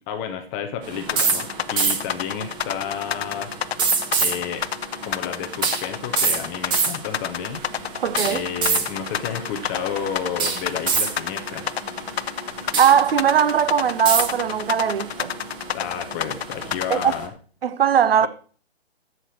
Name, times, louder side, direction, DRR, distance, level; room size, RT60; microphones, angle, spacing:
voice 1, 0.1-3.5 4.2-4.6 5.0-7.6 8.3-11.7 15.7-17.3 18.2-18.3, left 8 dB, 10° left, 0.5 m, -31 dB
sound 1, 0.8-17.3, right 5 dB, 15° right, 1.0 m, -28 dB
sound 2, 1.1-17.2, left 9 dB, 70° left, 0.6 m, -29 dB
sound 3, 7.5-16.9, right 4 dB, 35° right, 2.5 m, -47 dB
voice 2, 8.0-8.4 12.8-15.3 16.9-17.1 17.6-18.3, right 8 dB, 60° right, 0.7 m, -19 dB
10.0 x 6.6 x 6.3 m
hypercardioid pair, 150°, 32 cm